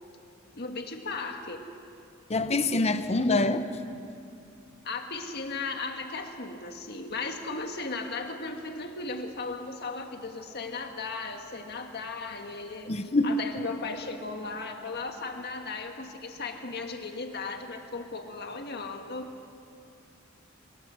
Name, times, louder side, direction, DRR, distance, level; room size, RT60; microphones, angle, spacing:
voice 1, 0.5-1.7 4.8-12.9 13.2-19.3, left 3 dB, 50° left, 4 dB, 1.6 m, -36 dB
voice 2, 2.3-3.7 12.9-13.4, left 2 dB, 30° left, 10 dB, 0.9 m, -25 dB
22.5 x 21.5 x 6.3 m, 2.6 s
head